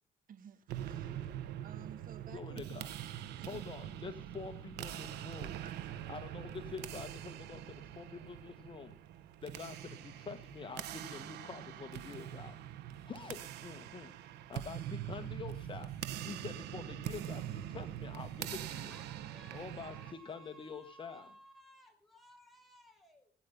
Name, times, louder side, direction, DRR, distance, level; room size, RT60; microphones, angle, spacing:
voice 1, 0.3-2.9 3.3-3.7 5.6-6.1, right 8 dB, 55° right, 11 dB, 1.6 m, -55 dB
sound 1, 0.7-20.1, right 11 dB, 85° right, 1.5 m, -43 dB
voice 2, 2.3-2.9 3.5-5.6 6.1-8.9 9.4-12.6 13.0-18.9 19.5-21.3, left 5 dB, 30° left, 7 dB, 1.6 m, -46 dB
voice 3, 18.9-23.3, equal, ahead, 4 dB, 6.2 m, -59 dB
21.0 x 10.0 x 5.5 m, 0.41 s
cardioid pair, 110°, 17 cm